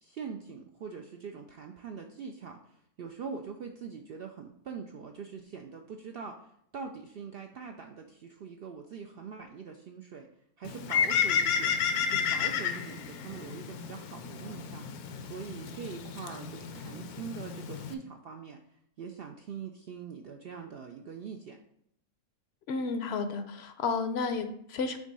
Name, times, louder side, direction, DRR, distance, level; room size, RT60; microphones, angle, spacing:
voice 1, 0.0-10.3 10.6-11.8 12.1-18.6 19.0-21.6, right 6 dB, 80° right, 4 dB, 0.5 m, -43 dB
Bird, 10.6-17.9, left 7 dB, 80° left, 1.1 m, -32 dB
voice 2, 22.7-25.0, left 4 dB, 60° left, 8 dB, 0.7 m, -32 dB
6.1 x 3.6 x 5.2 m, 0.73 s
omnidirectional pair, 1.6 m